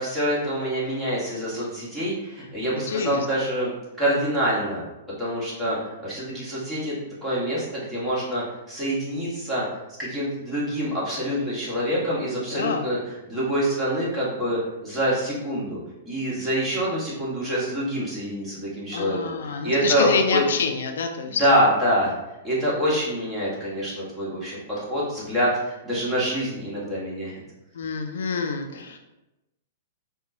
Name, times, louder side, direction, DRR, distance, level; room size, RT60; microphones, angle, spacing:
voice 1, 0.0-3.7 4.0-9.6 10.0-13.0 13.3-15.8 16.0-20.4 21.3-22.1 22.4-27.3, equal, 5° right, -9 dB, 1.5 m, -26 dB
voice 2, 2.7-3.3 12.5-12.9 18.9-21.4 27.7-29.0, left 5 dB, 75° left, 5 dB, 0.3 m, -27 dB
4.1 x 2.2 x 2.8 m, 0.98 s
hypercardioid pair, 125°, 0 cm